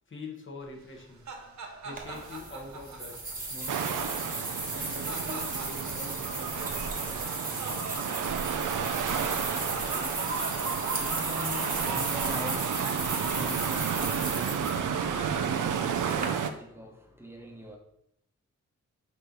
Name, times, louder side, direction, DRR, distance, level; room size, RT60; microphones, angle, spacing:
voice 1, 0.1-1.3 1.8-4.3 4.7-6.6 11.9-13.4, left 3 dB, 40° left, 1.3 m, -45 dB
sound 1, 0.9-16.3, right 4 dB, 65° right, 1.0 m, -39 dB
sound 2, 2.0-16.3, right 3 dB, 25° right, 1.2 m, -36 dB
sound 3, 3.7-16.5, right 8 dB, 80° right, 0.6 m, -32 dB
voice 2, 8.9-17.8, left 1 dB, 10° right, 1.1 m, -45 dB
6.5 x 3.1 x 5.2 m
wide cardioid pair, 125°, 30 cm